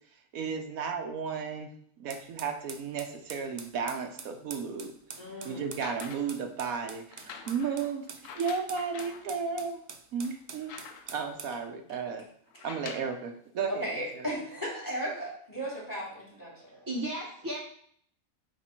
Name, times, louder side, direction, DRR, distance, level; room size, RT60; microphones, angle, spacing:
voice 1, 0.3-1.7 2.0-4.9 5.4-8.0 8.3-9.8 10.1-10.7 11.1-12.2 12.6-13.9 14.1-14.3, right 5 dB, 80° right, 5 dB, 1.2 m, -34 dB
sound 1, 2.1-11.6, right 5 dB, 50° right, 0.5 m, -46 dB
voice 2, 5.2-5.7 13.7-16.5, right 1 dB, 15° left, -5 dB, 2.5 m, -35 dB
sound 2, 5.6-6.4 7.1-9.3 9.8-9.9 10.2-11.3 12.5-13.2 14.1-14.2, left 6 dB, 70° left, 1.1 m, -46 dB
voice 3, 16.5-17.6, right 1 dB, 15° right, -6 dB, 1.0 m, -36 dB
8.8 x 3.2 x 4.4 m, 0.62 s
omnidirectional pair, 1.4 m